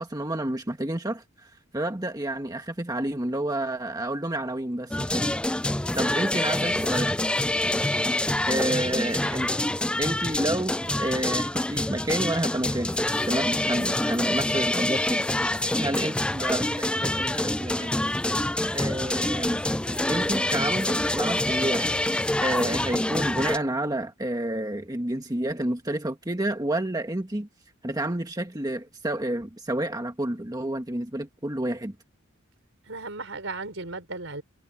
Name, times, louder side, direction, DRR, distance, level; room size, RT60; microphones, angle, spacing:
voice 1, 0.0-5.3 5.9-7.2 8.5-9.6 10.0-13.0 13.3-15.3 15.8-18.0 18.7-19.6 20.1-21.9 22.4-27.5 27.8-31.9, right 1 dB, 20° right, 1.5 m, -29 dB
sound 1, 4.9-23.6, left 1 dB, 5° left, 0.3 m, -26 dB
voice 2, 32.9-34.4, right 3 dB, 70° right, 5.0 m, -36 dB
head